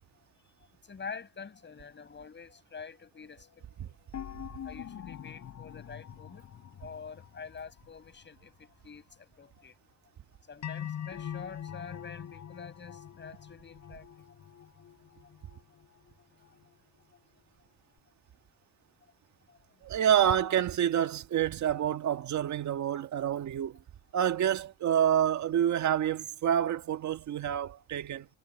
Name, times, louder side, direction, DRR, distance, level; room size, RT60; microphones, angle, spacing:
voice 1, 0.9-4.0 4.6-6.5 6.8-9.7 10.5-14.1 19.5-19.6, left 5 dB, 35° left, 6.8 m, -46 dB
sound 1, 4.1-8.6 10.6-16.0 16.4-16.5, left 9 dB, 60° left, 7.0 m, -44 dB
voice 2, 19.8-23.8 24.1-28.3, right 10 dB, 70° right, 1.8 m, -28 dB
cardioid pair, 90°, 30 cm